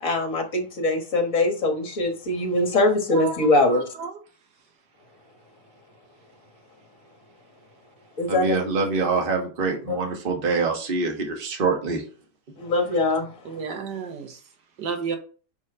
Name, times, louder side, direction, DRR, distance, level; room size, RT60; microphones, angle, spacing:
voice 1, 0.0-3.9 8.2-8.6 9.9-10.0 12.6-13.6, left 2 dB, 55° left, 3 dB, 1.8 m, -22 dB
voice 2, 3.1-4.1 13.5-14.4 14.8-15.2, right 5 dB, 80° right, 5 dB, 1.8 m, -32 dB
voice 3, 8.3-12.0, right 4 dB, 35° right, 2 dB, 1.4 m, -25 dB
5.2 x 4.9 x 5.3 m, 0.39 s
omnidirectional pair, 1.8 m